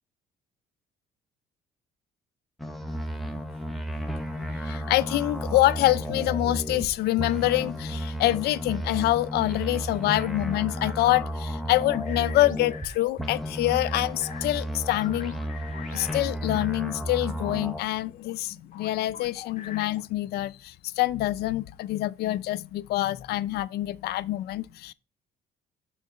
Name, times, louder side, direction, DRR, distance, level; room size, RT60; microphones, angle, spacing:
sound 1, 2.6-6.9 7.2-12.9 13.2-17.8, equal, ahead, 1.0 m, -33 dB
voice 1, 4.6-15.4 15.9-24.9, left 16 dB, 70° left, 0.5 m, -26 dB
sound 2, 10.1-16.6 17.0-20.2, left 7 dB, 50° left, 1.1 m, -46 dB
6.4 x 3.8 x 6.3 m
cardioid pair, 110°, 17 cm